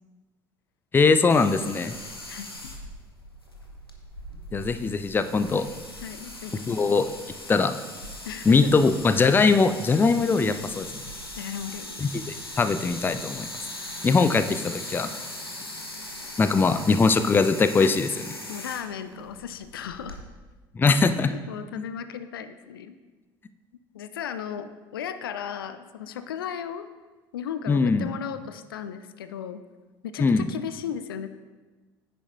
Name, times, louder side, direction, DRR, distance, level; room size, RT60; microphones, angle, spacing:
voice 1, 0.9-1.9 4.5-5.7 6.7-7.1 7.5-7.7 8.5-10.9 12.0-13.5 14.0-15.1 16.4-18.1 20.8-21.3 27.7-28.1 30.2-30.5, left 4 dB, 15° left, 11 dB, 0.5 m, -21 dB
sound 1, 1.3-20.2, left 1 dB, 90° left, 0.8 m, -40 dB
voice 2, 6.0-7.0 8.3-8.7 11.4-12.0 17.8-18.1 18.5-20.2 20.8-23.0 23.9-26.9 27.3-29.6 30.1-31.3, left 8 dB, 70° left, 11 dB, 0.4 m, -36 dB
9.8 x 8.8 x 2.6 m, 1.3 s
figure-of-eight pair, 60°, 12 cm